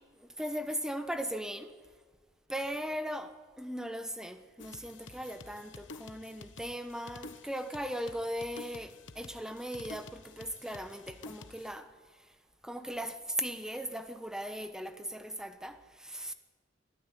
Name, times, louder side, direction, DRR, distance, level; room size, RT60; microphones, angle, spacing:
voice 1, 0.2-1.8 2.5-12.3 12.6-16.3, equal, 5° right, 1.0 m, -38 dB
sound 1, 4.6-11.7, left 3 dB, 70° left, 1.1 m, -50 dB
22.0 x 13.0 x 9.9 m
head